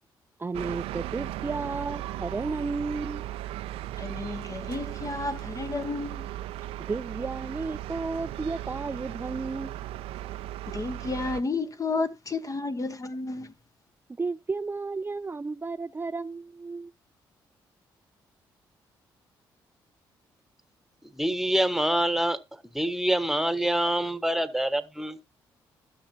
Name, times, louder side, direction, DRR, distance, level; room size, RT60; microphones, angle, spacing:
voice 1, 0.4-3.2 6.9-9.7 14.2-16.9, right 3 dB, 20° right, 0.4 m, -33 dB
sound 1, 0.5-11.4, right 14 dB, 80° right, 0.5 m, -37 dB
voice 2, 4.0-6.3 10.7-13.5, left 3 dB, 35° left, 1.1 m, -32 dB
voice 3, 21.1-22.4 22.7-25.2, right 1 dB, 5° right, 1.3 m, -26 dB
14.5 x 6.2 x 2.8 m
hypercardioid pair, 50°, 10 cm